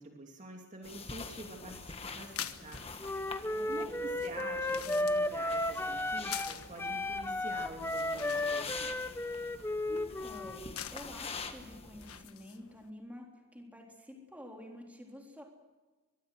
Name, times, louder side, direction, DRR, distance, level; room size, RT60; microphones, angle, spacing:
voice 1, 0.0-2.8 3.6-9.1, right 2 dB, 35° right, 1 dB, 2.8 m, -47 dB
sound 1, 0.8-12.2, left 4 dB, 25° left, 1.6 m, -46 dB
sound 2, 2.1-12.9, left 10 dB, 80° left, 1.4 m, -48 dB
Wind instrument woodwind instrument, 3.0-6.5 6.8-10.7, left 1 dB, 10° left, 0.9 m, -34 dB
voice 2, 3.5-4.0 9.9-15.4, left 1 dB, 5° right, 0 dB, 3.6 m, -49 dB
23.5 x 23.0 x 6.5 m, 1.3 s
head